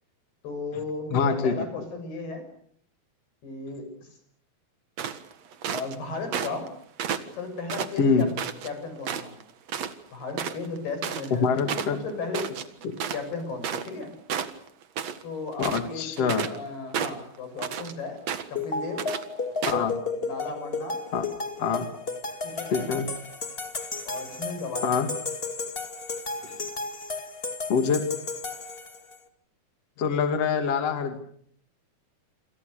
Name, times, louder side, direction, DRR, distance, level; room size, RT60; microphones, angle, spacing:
voice 1, 0.4-2.4 3.4-4.1 5.7-6.7 7.3-8.3 8.6-9.3 10.1-11.5 11.9-12.5 13.1-14.1 15.2-18.2 18.5-19.1 20.2-21.0 22.4-23.0 24.1-25.1, left 3 dB, 85° left, 7 dB, 8.9 m, -35 dB
voice 2, 1.1-1.5 8.0-8.3 11.4-12.0 12.8-12.9 15.6-16.5 19.7-19.9 21.1-21.2 21.6-21.9 22.7-23.1 24.8-25.1 26.4-26.6 27.7-28.0 30.0-31.2, left 5 dB, 45° left, 6 dB, 3.2 m, -25 dB
sound 1, 5.0-6.0 6.3-6.7 7.0-8.7 9.0-9.4 9.7-9.9 10.2-14.0 14.3-15.2 15.5-16.6 16.9-17.9 18.3-18.6 19.0-19.2 19.6-19.9, right 8 dB, 55° right, 2.4 m, -32 dB
sound 2, 18.5-29.2, left 4 dB, 25° left, 1.4 m, -33 dB
28.5 x 27.0 x 6.7 m, 0.64 s
omnidirectional pair, 4.4 m